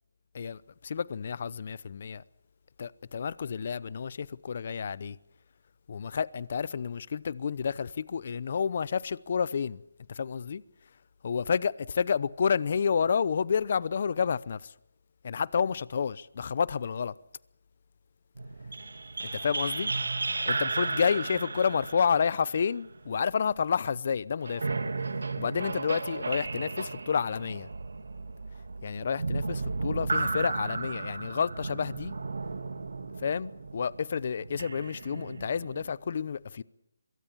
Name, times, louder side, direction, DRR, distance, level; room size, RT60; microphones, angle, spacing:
voice 1, 0.3-2.2 2.8-5.2 5.9-9.8 10.1-10.6 11.2-14.7 15.2-17.1 19.2-19.9 20.4-24.8 25.4-27.7 28.8-32.2 33.2-36.6, left 6 dB, 45° left, 0.8 m, -30 dB
sound 1, 18.4-23.4 24.4-35.9, right 3 dB, 75° right, 2.2 m, -34 dB
24.0 x 23.0 x 7.3 m
hypercardioid pair, 165°, 0 cm